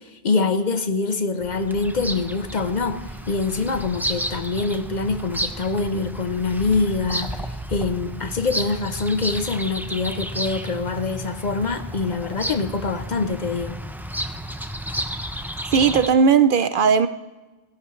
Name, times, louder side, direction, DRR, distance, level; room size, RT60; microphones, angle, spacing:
voice 1, 0.2-13.8, left 4 dB, 50° left, 0.8 m, -25 dB
Bird vocalization bird call bird song, 1.4-16.1, equal, ahead, 0.5 m, -32 dB
voice 2, 15.7-17.1, right 6 dB, 60° right, 0.7 m, -17 dB
29.5 x 11.0 x 3.2 m
omnidirectional pair, 1.1 m